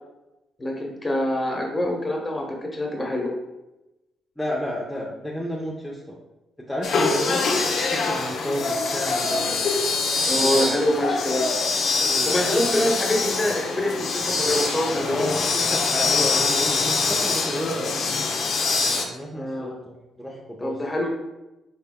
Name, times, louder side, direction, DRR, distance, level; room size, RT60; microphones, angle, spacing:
voice 1, 0.6-3.3 10.3-11.5 12.3-15.3 19.3-19.7 20.6-21.1, left 1 dB, 20° left, 0 dB, 1.2 m, -25 dB
voice 2, 4.4-6.2 6.7-7.6 7.9-9.6 10.3-10.7 12.0-12.6 15.1-18.3 18.8-20.8, equal, 5° left, -4 dB, 0.8 m, -32 dB
sound 1, 6.8-19.0, left 4 dB, 65° left, 0.8 m, -24 dB
5.5 x 4.2 x 2.2 m, 0.97 s
cardioid pair, 90°, 0 cm